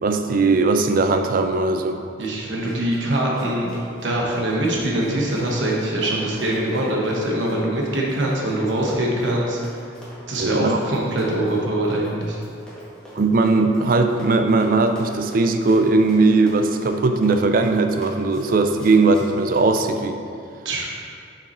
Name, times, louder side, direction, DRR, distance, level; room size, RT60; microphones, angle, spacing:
voice 1, 0.0-2.0 10.4-10.8 13.1-20.2, right 3 dB, 45° right, 7 dB, 0.4 m, -19 dB
voice 2, 2.2-3.7 4.0-9.6 10.3-12.4 20.6-20.9, right 1 dB, 75° right, -2 dB, 1.2 m, -23 dB
Run, 2.5-19.7, equal, 5° left, 1.3 m, -43 dB
6.9 x 5.7 x 3.0 m, 2.5 s
head